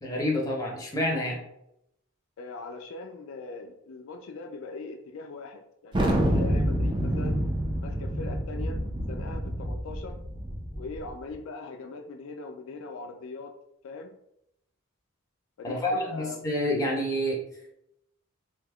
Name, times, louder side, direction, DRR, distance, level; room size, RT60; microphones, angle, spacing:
voice 1, 0.0-1.4 15.6-17.4, left 1 dB, 15° left, -1 dB, 0.6 m, -28 dB
voice 2, 2.4-7.4 7.8-8.8 9.1-10.2 10.7-13.5 13.8-14.2 15.6-16.4, left 3 dB, 65° left, 4 dB, 0.3 m, -40 dB
Thunder, 5.9-11.1, equal, 20° right, 0.4 m, -27 dB
2.8 x 2.2 x 3.5 m, 0.79 s
head